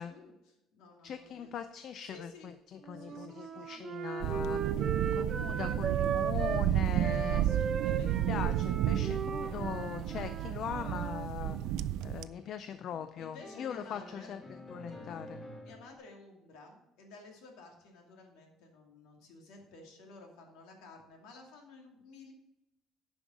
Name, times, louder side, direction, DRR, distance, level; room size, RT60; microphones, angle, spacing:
voice 1, 0.0-1.5 2.1-2.5 2.9-3.9 7.3-8.5 13.2-14.3 15.6-22.3, left 3 dB, 85° left, 2 dB, 2.5 m, -54 dB
voice 2, 1.0-4.9 5.1-7.5 8.0-11.6 12.0-14.4 14.7-15.4, left 8 dB, 40° left, 11 dB, 0.4 m, -41 dB
Wind instrument woodwind instrument, 2.8-6.7 7.0-11.3, right 6 dB, 30° right, 0.7 m, -37 dB
sound 1, 4.2-12.2, right 12 dB, 70° right, 0.4 m, -32 dB
sound 2, 7.8-16.0, left 2 dB, 20° left, 1.3 m, -51 dB
9.8 x 5.4 x 6.2 m, 0.93 s
cardioid pair, 175°, 0 cm